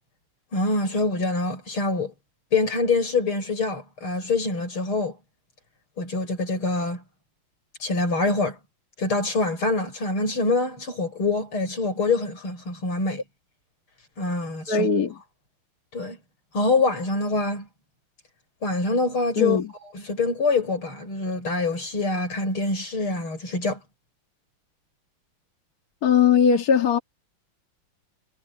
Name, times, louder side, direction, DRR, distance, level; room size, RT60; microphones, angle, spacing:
voice 1, 0.5-2.1 2.5-5.2 6.0-7.0 7.8-8.6 9.0-13.2 14.2-14.9 15.9-16.2 16.5-17.7 18.6-19.6 19.9-23.8, left 3 dB, 85° left, 7.8 m, -25 dB
voice 2, 14.7-15.1 19.4-19.7 26.0-27.0, left 7 dB, 45° left, 2.3 m, -19 dB
omnidirectional pair, 2.3 m